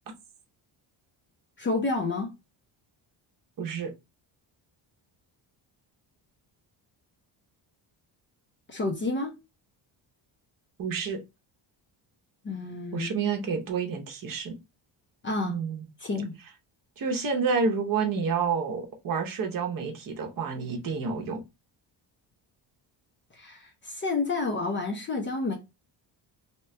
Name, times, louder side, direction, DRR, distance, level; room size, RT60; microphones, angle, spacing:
voice 1, 1.6-2.3 8.7-9.3 12.4-13.1 15.2-15.6 16.0-16.3 23.3-25.6, left 3 dB, 25° left, 0.5 m, -29 dB
voice 2, 3.6-3.9 10.8-11.2 12.9-14.5 15.4-15.9 17.0-21.4, right 5 dB, 50° right, 0.8 m, -29 dB
2.9 x 2.3 x 4.2 m
cardioid pair, 175°, 44 cm